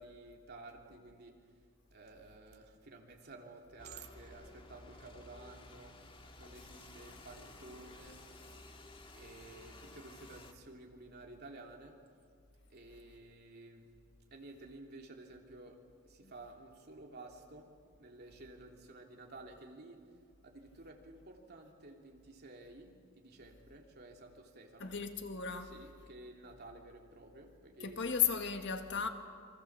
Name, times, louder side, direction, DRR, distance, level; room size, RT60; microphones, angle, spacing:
voice 1, 0.0-1.4 1.9-5.9 6.4-8.2 9.1-12.0 12.7-13.9 14.3-15.8 16.1-20.1 20.4-25.0 25.6-28.2, right 2 dB, 50° right, 3.2 m, -53 dB
sound 1, 3.8-10.5, left 2 dB, 25° left, 1.9 m, -54 dB
voice 2, 24.8-25.7 27.8-29.1, left 7 dB, 60° left, 1.8 m, -34 dB
28.5 x 24.0 x 7.5 m
head